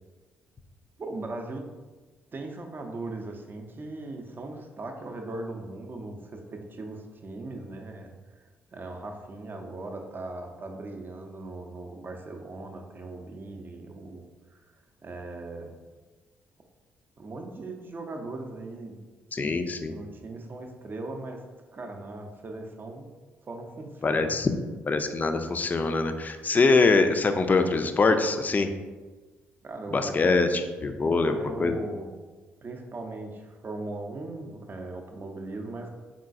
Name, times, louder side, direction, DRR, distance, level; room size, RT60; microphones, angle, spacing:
voice 1, 1.0-1.6 2.3-8.5 8.7-14.6 15.0-15.7 17.2-19.0 19.4-19.5 19.9-21.4 21.7-23.1 23.4-24.3 29.6-30.3 31.0-32.1 32.6-35.9, right 2 dB, 35° right, 3 dB, 0.6 m, -39 dB
voice 2, 19.3-20.0 24.0-24.5 24.8-28.7 29.9-31.8, left 3 dB, 30° left, 8 dB, 0.4 m, -24 dB
3.8 x 3.7 x 2.5 m, 1.3 s
figure-of-eight pair, 45°, 6 cm